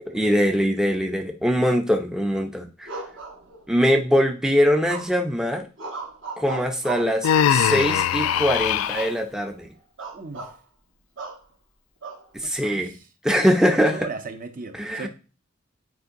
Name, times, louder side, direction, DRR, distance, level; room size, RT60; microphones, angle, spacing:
voice 1, 0.1-2.9 3.7-5.6 6.4-9.7 12.3-13.0 13.2-14.1 14.8-15.1, equal, 5° right, 0.4 m, -22 dB
sound 1, 2.9-3.9 4.9-5.3 5.8-7.2 7.9-8.5 8.9-9.2 9.5-9.6 10.0-10.6 11.2-11.4 12.0-12.7, right 4 dB, 70° right, 1.5 m, -36 dB
Human voice, 7.2-9.1, left 9 dB, 85° left, 0.3 m, -21 dB
voice 2, 10.1-10.5 12.4-13.0 13.7-15.1, right 4 dB, 45° right, 0.6 m, -37 dB
9.4 x 4.5 x 2.6 m
head